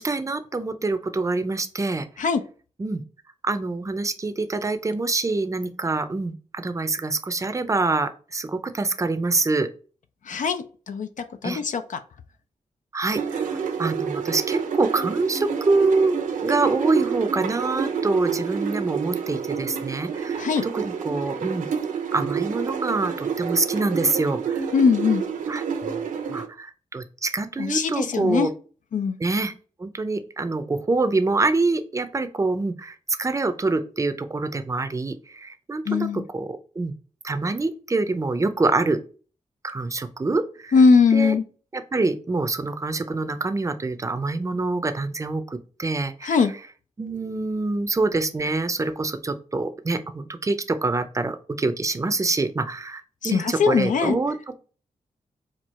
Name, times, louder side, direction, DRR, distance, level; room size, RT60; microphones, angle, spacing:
voice 1, 0.0-2.1 2.8-3.0 3.4-9.7 11.4-11.6 12.9-21.7 22.1-24.6 25.5-26.0 26.3-28.5 29.2-29.5 29.8-36.9 37.2-39.0 39.6-40.7 41.1-41.3 41.7-46.5 47.0-54.4, right 3 dB, 25° right, 10 dB, 0.5 m, -25 dB
voice 2, 10.3-11.1 11.4-11.8 20.4-20.6 24.7-25.2 27.6-28.5 28.9-29.2 35.9-36.2 40.7-41.4 46.2-46.5 53.2-54.2, left 5 dB, 75° left, 9 dB, 0.5 m, -20 dB
sound 1, 13.1-26.5, right 7 dB, 80° right, 0.7 m, -28 dB
4.5 x 2.4 x 4.2 m, 0.38 s
cardioid pair, 85°, 13 cm